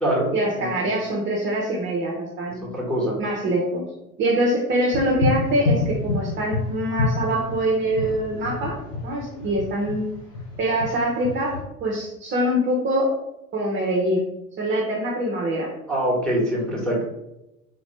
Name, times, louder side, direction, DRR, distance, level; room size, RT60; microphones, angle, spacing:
voice 1, 0.3-2.6 3.2-3.8 4.2-8.8 9.0-10.1 10.6-13.1 13.5-14.2 14.6-15.7, right 1 dB, 25° right, -3 dB, 0.8 m, -24 dB
voice 2, 2.7-3.2 15.9-17.0, right 1 dB, ahead, -5 dB, 1.4 m, -23 dB
sound 1, 4.9-11.6, left 3 dB, 65° left, 1.2 m, -27 dB
3.8 x 3.0 x 3.2 m, 0.90 s
figure-of-eight pair, 80°, 43 cm